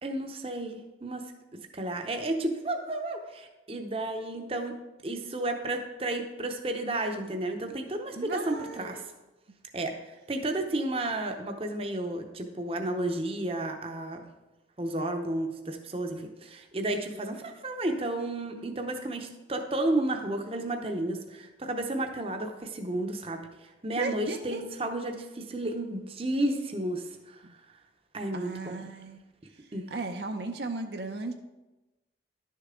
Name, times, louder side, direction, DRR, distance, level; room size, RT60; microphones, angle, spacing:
voice 1, 0.0-1.2 1.7-4.8 5.0-9.0 9.7-14.2 14.8-23.5 23.8-27.4 28.1-28.8 29.7-29.9, right 1 dB, 30° right, 4 dB, 0.7 m, -32 dB
voice 2, 8.2-9.1 24.0-24.6 27.4-27.5 28.3-29.2 29.9-31.3, right 3 dB, 65° right, 5 dB, 0.6 m, -36 dB
11.0 x 6.6 x 3.7 m, 1.1 s
head